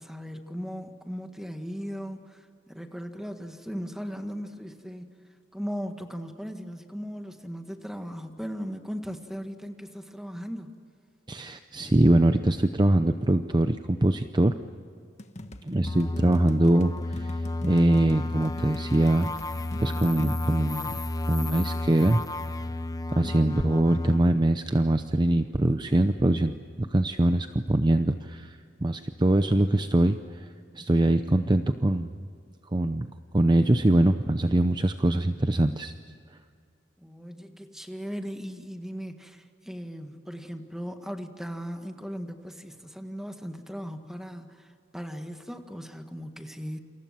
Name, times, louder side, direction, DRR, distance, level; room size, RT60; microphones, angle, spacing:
voice 1, 0.0-5.1 5.5-10.8 37.0-46.8, equal, ahead, 6 dB, 1.8 m, -38 dB
voice 2, 11.3-14.6 15.6-19.3 19.8-21.0 21.3-22.2 23.2-30.4 30.7-32.1 32.7-33.1 33.3-35.9, right 1 dB, 25° right, 9 dB, 0.7 m, -23 dB
sound 1, 15.2-20.3, left 1 dB, 35° left, 1.4 m, -42 dB
sound 2, 15.8-24.2, left 2 dB, 20° left, 0.8 m, -31 dB
28.0 x 27.0 x 7.6 m, 2.3 s
head